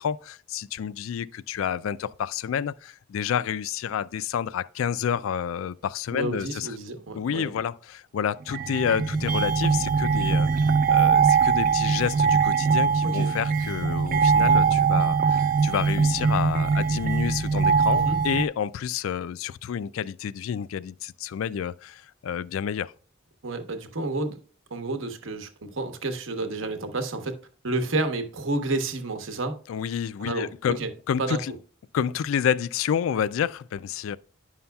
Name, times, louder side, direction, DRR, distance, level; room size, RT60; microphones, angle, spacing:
voice 1, 0.0-6.7 7.1-22.9 29.7-30.8 31.1-31.5 31.9-34.2, left 8 dB, 90° left, 0.3 m, -29 dB
voice 2, 6.1-7.6 13.0-13.3 17.9-18.2 23.4-24.4 24.7-27.4 27.6-29.6 30.2-30.5 30.8-30.9 31.2-31.4, right 2 dB, 75° right, 1.0 m, -30 dB
sound 1, 8.5-18.4, right 5 dB, 45° right, 0.4 m, -22 dB
10.0 x 5.6 x 2.3 m
head